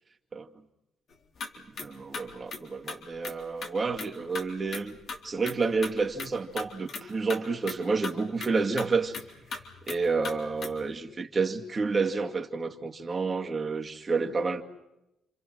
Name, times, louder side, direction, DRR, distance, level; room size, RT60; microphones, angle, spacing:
sound 1, 1.1-1.5 1.7-1.9 2.1-3.3 3.6-4.1 4.3-7.0 7.3-7.4 7.7-7.8 8.0-10.9, left 4 dB, 60° left, 3.8 m, -38 dB
voice 1, 1.8-5.0 5.2-9.2 9.9-14.6, right 4 dB, 35° right, 2.4 m, -29 dB
29.5 x 26.5 x 6.3 m
cardioid pair, 90°, 0 cm